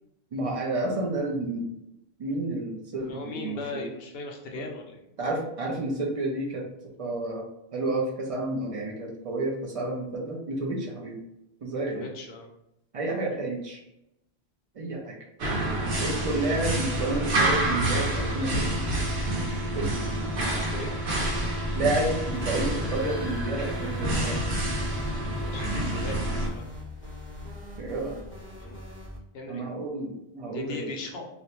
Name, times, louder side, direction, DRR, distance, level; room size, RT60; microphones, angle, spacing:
voice 1, 0.3-1.7 2.2-3.9 4.5-4.6 5.2-6.6 7.0-7.5 7.7-11.2 11.6-12.1 12.9-13.8 14.8-15.2 16.0-18.7 19.7-19.9 21.7-24.3 27.8-28.2 29.5-30.8, right 2 dB, 55° right, -1 dB, 0.4 m, -30 dB
voice 2, 3.0-5.0 11.9-12.5 20.5-20.9 25.4-26.7 28.6-28.8 29.3-29.6 30.5-31.3, left 3 dB, 70° left, 2 dB, 0.8 m, -38 dB
sound 1, 15.4-26.5, right 1 dB, 85° right, 0.9 m, -28 dB
sound 2, 22.3-29.2, left 1 dB, 15° left, 0.7 m, -42 dB
2.5 x 2.1 x 2.8 m, 0.83 s
omnidirectional pair, 1.1 m